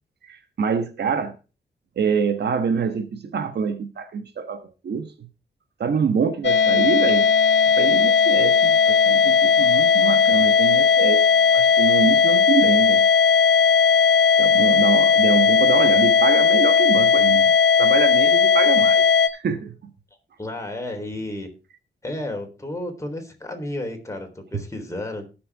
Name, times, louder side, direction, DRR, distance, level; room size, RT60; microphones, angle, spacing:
voice 1, 0.3-1.3 2.0-5.3 5.8-7.3 7.8-11.3 11.5-13.1 14.4-19.1 19.3-19.9, right 6 dB, 70° right, 1.4 m, -25 dB
sound 1, 6.4-19.3, left 6 dB, 80° left, 1.3 m, -17 dB
voice 2, 20.4-21.5 22.0-25.3, left 1 dB, 15° left, 3.7 m, -32 dB
18.5 x 6.8 x 3.6 m
wide cardioid pair, 105°, 18 cm